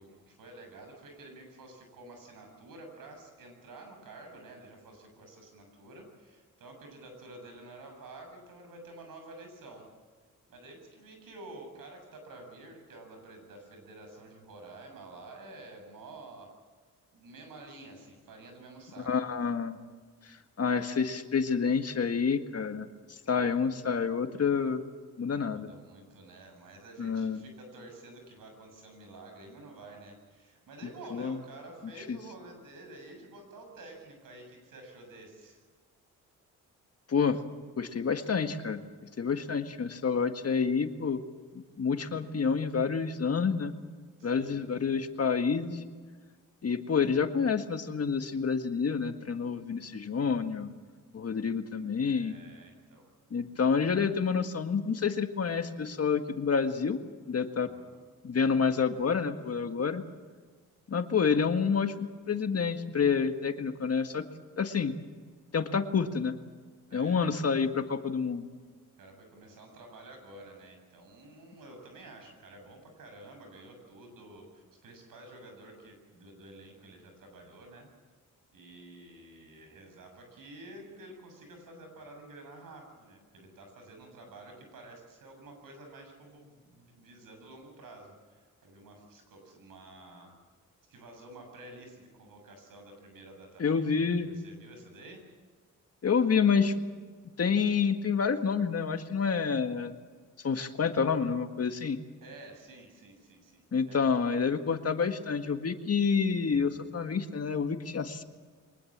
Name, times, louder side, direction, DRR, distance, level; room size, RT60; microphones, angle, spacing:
voice 1, 0.0-9.9 10.5-16.5 17.1-19.1 23.3-23.7 25.3-35.6 39.3-39.5 44.2-44.7 52.0-53.1 53.6-53.7 57.6-58.0 66.9-67.6 69.0-77.9 78.5-90.4 90.9-95.3 102.2-104.0, right 2 dB, 90° right, 4 dB, 7.4 m, -50 dB
voice 2, 19.1-19.8 20.2-24.8 25.2-25.7 27.0-27.4 31.1-31.4 32.1-32.2 37.1-37.4 37.8-38.8 39.2-41.2 41.5-43.7 44.2-45.8 46.6-50.7 51.1-52.4 53.3-57.0 57.3-57.7 58.2-60.0 60.9-64.3 64.6-64.9 65.5-66.4 66.9-68.5 93.6-94.3 96.0-96.7 97.4-99.9 100.4-102.0 103.7-108.2, left 6 dB, 50° left, 7 dB, 1.8 m, -28 dB
23.5 x 20.0 x 7.5 m, 1.5 s
cardioid pair, 90°, 32 cm